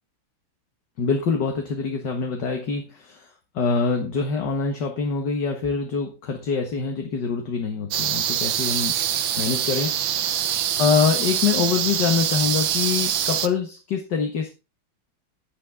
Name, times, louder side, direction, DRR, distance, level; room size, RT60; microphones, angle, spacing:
voice 1, 1.0-8.9 9.4-14.5, left 5 dB, 55° left, 4 dB, 2.1 m, -25 dB
sound 1, 7.9-13.5, right 10 dB, 70° right, 1.6 m, -24 dB
10.5 x 9.7 x 3.6 m, 0.29 s
omnidirectional pair, 2.3 m